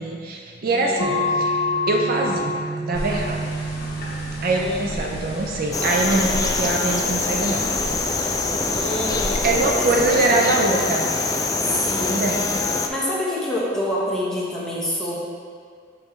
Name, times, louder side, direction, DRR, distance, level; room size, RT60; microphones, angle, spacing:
voice 1, 0.0-3.5 4.4-7.8 9.4-11.1 12.1-12.5, right 2 dB, 50° right, 1 dB, 0.5 m, -23 dB
voice 2, 0.6-1.3 4.5-5.0 8.7-10.5 11.6-12.2 12.9-15.2, left 1 dB, 5° left, -7 dB, 1.0 m, -28 dB
sound 1, 1.0-6.1, left 1 dB, 40° left, 1.2 m, -27 dB
sound 2, 2.9-10.2, left 1 dB, 60° left, 1.0 m, -33 dB
sound 3, 5.7-12.9, left 3 dB, 20° left, 0.3 m, -24 dB
6.0 x 5.3 x 3.1 m, 2.1 s
head